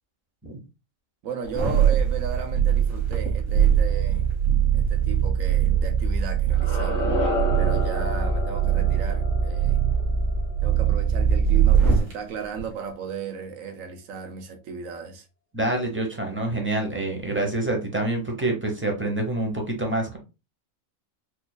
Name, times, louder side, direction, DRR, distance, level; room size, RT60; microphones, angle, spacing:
voice 1, 1.2-4.3 4.7-7.1 7.6-9.8 10.6-15.2, right 6 dB, 90° right, 1.2 m, -35 dB
sound 1, 1.4-12.1 12.6-12.7, right 8 dB, 70° right, 1.6 m, -22 dB
sound 2, 6.5-11.4, left 2 dB, 85° left, 1.7 m, -31 dB
voice 2, 15.5-20.2, right 2 dB, 10° right, 0.7 m, -26 dB
4.3 x 2.7 x 2.3 m
omnidirectional pair, 1.4 m